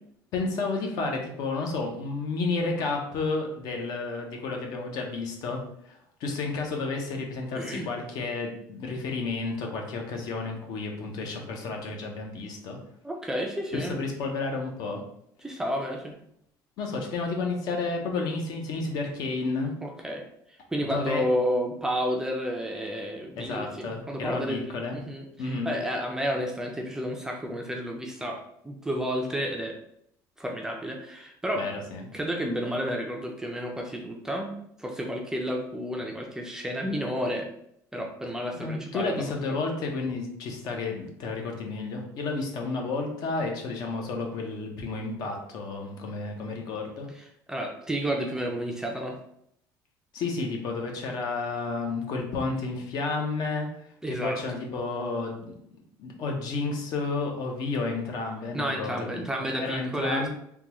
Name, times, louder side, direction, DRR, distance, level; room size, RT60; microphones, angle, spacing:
voice 1, 0.3-12.8 13.7-15.0 16.8-19.7 20.9-21.2 23.4-25.0 25.4-25.7 31.6-32.1 38.5-47.1 50.1-53.7 54.1-55.5 56.0-59.2 59.6-60.3, left 3 dB, 60° left, 2 dB, 0.8 m, -31 dB
voice 2, 7.5-7.9 13.0-14.0 15.4-16.2 19.8-20.2 20.7-29.8 30.4-31.6 32.1-37.5 37.9-39.2 47.5-49.2 54.0-54.4 58.5-60.3, equal, 5° right, 1 dB, 0.4 m, -31 dB
3.5 x 2.2 x 3.0 m, 0.72 s
cardioid pair, 135°, 8 cm